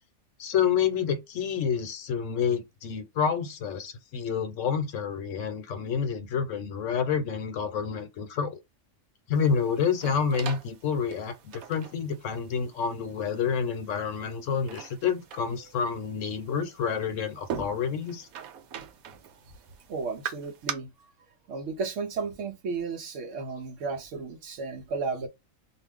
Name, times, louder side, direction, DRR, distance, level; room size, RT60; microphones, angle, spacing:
voice 1, 0.4-8.6 9.3-18.3, left 7 dB, 70° left, 1.0 m, -28 dB
sound 1, 9.3-20.7, right 8 dB, 90° right, 1.1 m, -42 dB
voice 2, 19.9-21.1 21.5-25.3, right 4 dB, 65° right, 0.9 m, -34 dB
2.5 x 2.3 x 3.4 m
omnidirectional pair, 1.4 m